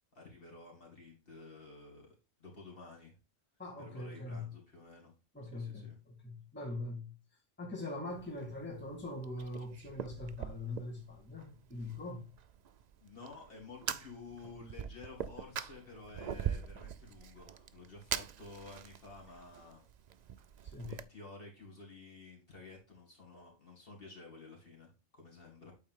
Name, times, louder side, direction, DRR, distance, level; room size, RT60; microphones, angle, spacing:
voice 1, 0.1-3.2 3.8-5.1 5.4-6.0 13.0-19.8 20.9-25.7, left 3 dB, 45° left, 2.4 m, -52 dB
voice 2, 3.6-4.5 5.3-7.1 7.6-12.3 20.6-20.9, left 2 dB, 10° left, 1.8 m, -42 dB
Fire, 8.1-21.0, right 8 dB, 80° right, 0.3 m, -43 dB
8.5 x 4.2 x 3.6 m
omnidirectional pair, 1.3 m